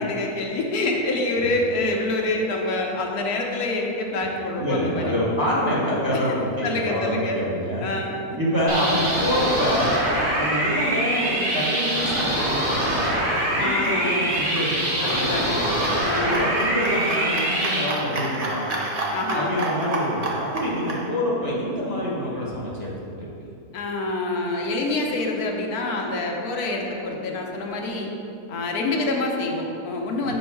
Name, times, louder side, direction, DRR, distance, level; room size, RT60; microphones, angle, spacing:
voice 1, 0.0-5.1 6.1-7.4 7.8-8.4 13.6-14.3 15.0-15.6 16.0-16.4 19.1-19.6 23.7-28.1 28.5-30.4, left 2 dB, 80° left, 0 dB, 1.3 m, -26 dB
voice 2, 4.6-7.9 8.4-10.0 10.3-13.1 13.4-16.0 16.2-18.7 19.3-22.9 23.2-23.5 30.2-30.4, equal, 15° right, -6 dB, 1.0 m, -26 dB
sound 1, 8.7-17.8, right 1 dB, 75° right, 2.1 m, -24 dB
sound 2, 10.6-21.0, right 2 dB, 40° right, 0.6 m, -32 dB
5.5 x 5.3 x 4.6 m, 2.7 s
omnidirectional pair, 1.6 m